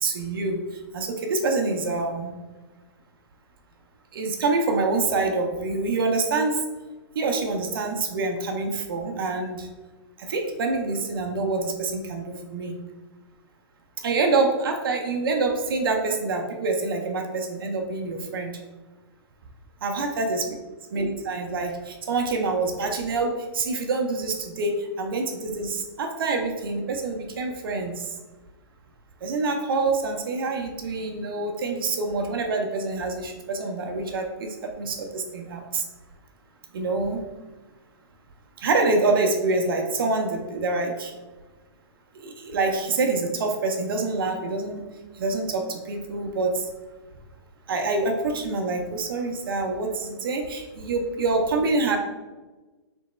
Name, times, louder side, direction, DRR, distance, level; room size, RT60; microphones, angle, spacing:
voice 1, 0.0-0.6 0.9-2.3 4.1-6.6 7.1-9.7 10.2-12.8 14.0-18.5 19.8-20.4 20.9-28.1 29.2-35.8 36.7-37.2 38.6-41.1 42.2-44.8 45.2-46.7 47.7-52.0, right 3 dB, 55° right, 3 dB, 0.7 m, -26 dB
3.5 x 3.0 x 4.1 m, 1.2 s
hypercardioid pair, 160°, 14 cm